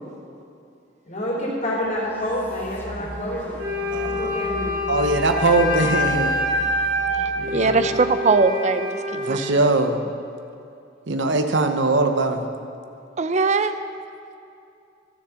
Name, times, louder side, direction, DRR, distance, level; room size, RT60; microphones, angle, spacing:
voice 1, 1.0-3.6 4.0-4.8 6.9-7.5 7.7-7.8, equal, 40° left, -4 dB, 3.4 m, -29 dB
sound 1, 1.8-8.1, equal, 10° left, 1.4 m, -37 dB
Wind instrument woodwind instrument, 3.6-9.5, left 1 dB, 85° right, 2.7 m, -26 dB
voice 2, 4.9-6.4 7.4-7.8 9.2-10.0 11.1-12.4, right 2 dB, 65° right, 7 dB, 0.9 m, -21 dB
voice 3, 7.2-9.4 13.2-13.8, right 4 dB, 35° right, 10 dB, 0.5 m, -21 dB
12.5 x 7.3 x 7.0 m, 2.5 s
head